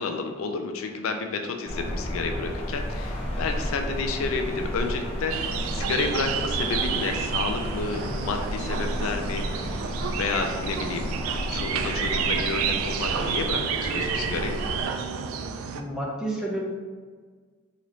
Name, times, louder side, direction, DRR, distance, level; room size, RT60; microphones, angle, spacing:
voice 1, 0.0-9.4 10.2-14.6, left 4 dB, 80° left, 5 dB, 0.4 m, -30 dB
sound 1, 1.7-14.8, equal, 30° left, 0.9 m, -32 dB
sound 2, 5.3-15.8, right 7 dB, 85° right, 0.3 m, -30 dB
voice 2, 15.7-16.6, right 1 dB, 5° right, -4 dB, 0.7 m, -30 dB
3.9 x 3.0 x 3.1 m, 1.5 s
head